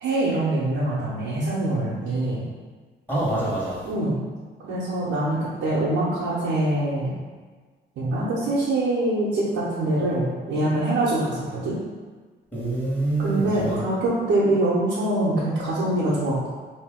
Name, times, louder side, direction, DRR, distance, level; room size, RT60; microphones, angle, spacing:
voice 1, 0.0-2.4 3.8-4.2 4.6-7.1 8.0-11.8 13.2-16.5, right 1 dB, 75° right, -8 dB, 0.7 m, -24 dB
voice 2, 3.1-3.9 12.5-13.8, right 2 dB, 10° left, -8 dB, 1.3 m, -26 dB
2.8 x 2.7 x 3.5 m, 1.4 s
cardioid pair, 90°, 20 cm